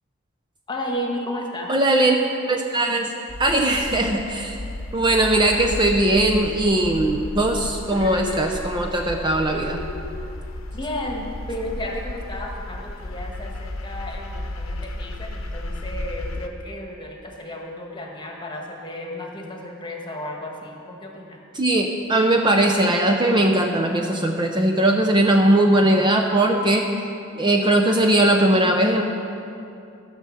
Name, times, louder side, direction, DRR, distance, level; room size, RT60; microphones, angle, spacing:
voice 1, 0.7-1.7 10.7-21.4, left 1 dB, 20° left, 0 dB, 1.4 m, -33 dB
voice 2, 1.7-2.2 2.5-3.1 3.4-4.6 4.9-9.8 21.5-26.9 27.4-29.0, right 1 dB, 20° right, 2 dB, 0.6 m, -19 dB
sound 1, 3.3-16.5, left 2 dB, 70° left, 0.9 m, -33 dB
14.0 x 6.8 x 6.3 m, 2.6 s
head